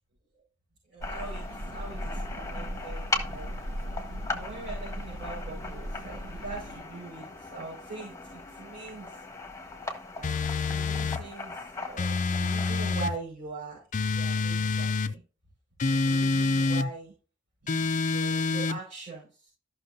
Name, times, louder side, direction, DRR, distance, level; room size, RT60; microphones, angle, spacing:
voice 1, 0.9-3.5 4.3-9.2 10.1-13.8 14.1-15.2 15.9-17.1 17.6-19.5, right 3 dB, 45° right, -6 dB, 5.6 m, -42 dB
sound 1, 1.0-12.9, left 3 dB, 15° left, 1.4 m, -39 dB
sound 2, 1.0-6.8, equal, 80° right, 0.7 m, -38 dB
sound 3, 10.2-11.2 12.0-13.2 13.9-15.1 15.8-16.9 17.7-18.8, left 3 dB, 40° left, 0.4 m, -27 dB
14.5 x 6.1 x 2.7 m, 0.34 s
head